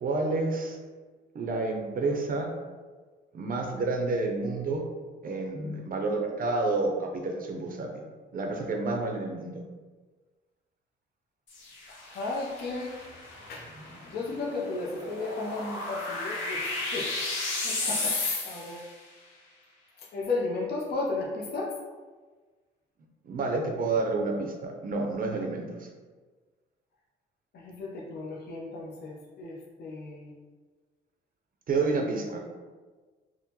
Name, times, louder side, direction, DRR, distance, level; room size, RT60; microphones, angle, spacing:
voice 1, 0.0-0.8 1.3-2.5 3.3-4.9 5.2-8.0 8.3-9.6 23.2-25.9 31.7-32.4, right 3 dB, 45° right, 2 dB, 0.5 m, -29 dB
sound 1, 11.5-18.9, left 2 dB, 75° left, 0.9 m, -34 dB
voice 2, 11.9-12.9 13.5-13.7 14.1-16.6 16.9-17.1 17.5-18.8 20.0-21.7 27.5-30.3 32.0-32.1, left 3 dB, 55° left, -2 dB, 0.6 m, -34 dB
3.6 x 2.0 x 2.8 m, 1.4 s
cardioid pair, 90°, 20 cm